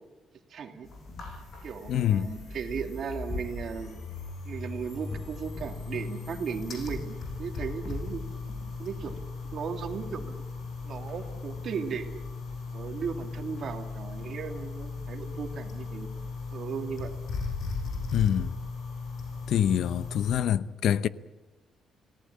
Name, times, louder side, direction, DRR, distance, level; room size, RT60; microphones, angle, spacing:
voice 1, 0.5-0.9 1.6-4.0 4.5-8.2 8.8-9.1 9.4-10.4 10.8-12.2 12.7-16.1 16.5-17.1, right 6 dB, 55° right, 2.8 m, -36 dB
sound 1, 0.8-20.4, left 4 dB, 55° left, 7.8 m, -37 dB
voice 2, 1.9-2.3 18.1-18.6 19.5-21.1, left 10 dB, 70° left, 0.7 m, -25 dB
28.0 x 18.0 x 8.7 m
cardioid pair, 135°, 0 cm